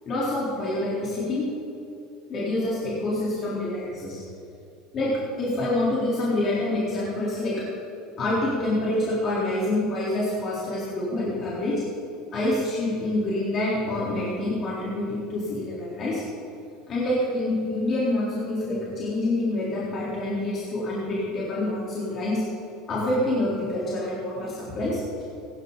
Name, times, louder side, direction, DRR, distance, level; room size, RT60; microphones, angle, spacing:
voice 1, 0.0-1.5 2.3-4.2 4.9-7.6 8.2-11.8 12.3-16.2 16.9-22.4 22.9-25.0, left 1 dB, 40° left, -7 dB, 3.9 m, -27 dB
16.5 x 12.5 x 4.1 m, 2.8 s
supercardioid pair, 105°, 0 cm